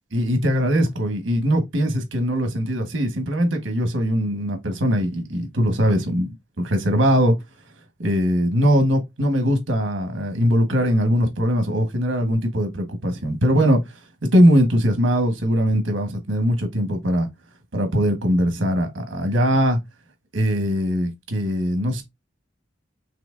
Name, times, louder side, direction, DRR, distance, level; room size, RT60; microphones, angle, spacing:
voice 1, 0.1-6.3 6.6-7.3 8.0-14.0 14.3-17.3 17.7-19.8 20.3-22.0, equal, 75° right, 1.4 m, -21 dB
6.0 x 2.9 x 2.6 m
head